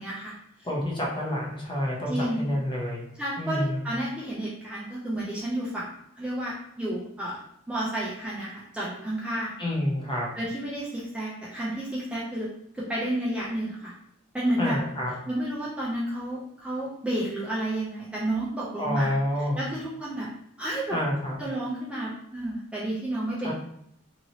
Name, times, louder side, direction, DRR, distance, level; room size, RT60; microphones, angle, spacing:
voice 1, 0.0-0.7 2.1-2.5 3.2-7.4 7.7-9.5 10.4-12.5 12.7-13.9 14.3-14.8 15.3-19.1 19.6-20.3 20.6-21.0 21.4-23.5, right 1 dB, 5° right, -7 dB, 0.5 m, -31 dB
voice 2, 0.6-3.1 3.4-3.8 9.6-10.3 14.6-15.1 18.8-19.6 20.9-21.3 23.4-23.5, left 1 dB, 25° left, -3 dB, 0.8 m, -28 dB
2.8 x 2.8 x 2.7 m, 0.73 s
head